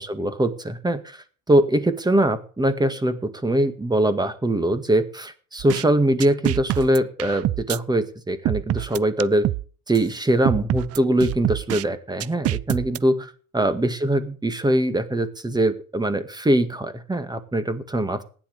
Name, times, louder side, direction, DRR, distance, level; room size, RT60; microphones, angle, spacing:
voice 1, 0.0-9.5 9.9-18.2, right 1 dB, 10° right, 11 dB, 1.9 m, -22 dB
sound 1, 5.6-5.8 6.2-7.8 8.4-9.6 9.9-10.0 10.4-11.8 12.2-13.0, right 14 dB, 40° right, 0.5 m, -25 dB
15.5 x 10.0 x 5.3 m, 0.40 s
supercardioid pair, 105°, 38 cm